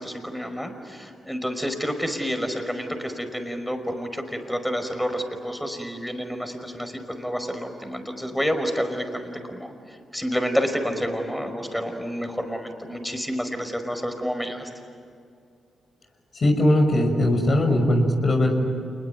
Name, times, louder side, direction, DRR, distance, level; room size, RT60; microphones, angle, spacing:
voice 1, 0.0-9.7 10.1-14.7, equal, 5° left, 7 dB, 5.2 m, -29 dB
voice 2, 16.4-18.6, left 1 dB, 50° left, 3 dB, 6.2 m, -19 dB
28.5 x 21.0 x 9.5 m, 2.4 s
hypercardioid pair, 40°, 0 cm